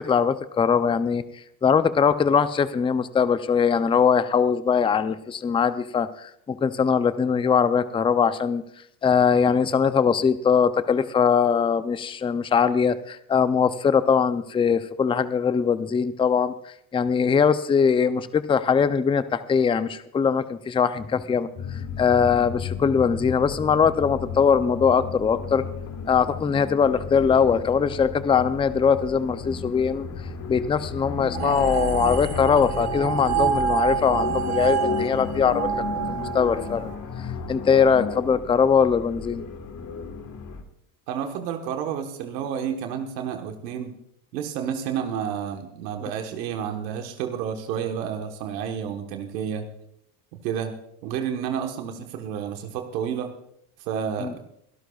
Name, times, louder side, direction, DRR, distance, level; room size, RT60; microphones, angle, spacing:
voice 1, 0.0-8.6 9.0-25.6 26.1-30.1 30.5-35.7 36.1-36.9 37.2-39.4 54.2-54.3, left 6 dB, 10° left, 13 dB, 0.5 m, -21 dB
sound 1, 21.6-40.6, left 5 dB, 35° left, 1.7 m, -34 dB
sound 2, 31.3-36.8, right 9 dB, 60° right, 3.3 m, -27 dB
voice 2, 41.1-43.9 44.3-49.7 50.3-50.7 51.0-53.3 53.8-54.4, right 8 dB, 80° right, 4 dB, 1.5 m, -30 dB
24.0 x 12.5 x 2.4 m, 0.73 s
supercardioid pair, 90°, 48 cm